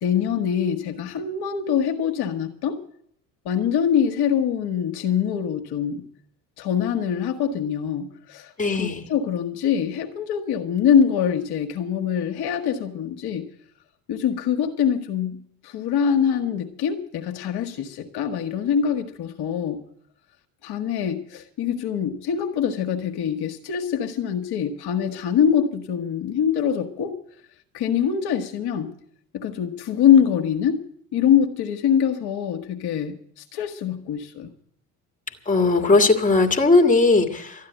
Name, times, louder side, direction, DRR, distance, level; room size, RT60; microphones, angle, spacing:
voice 1, 0.0-2.8 3.4-6.0 6.6-8.5 8.8-13.5 14.1-19.8 20.6-27.1 27.7-28.9 29.3-30.8 31.1-34.5, left 8 dB, 55° left, 5 dB, 1.4 m, -24 dB
voice 2, 8.6-9.1 35.5-37.7, left 3 dB, 15° left, 5 dB, 1.8 m, -18 dB
13.0 x 9.6 x 9.1 m, 0.68 s
hypercardioid pair, 60°, 45 cm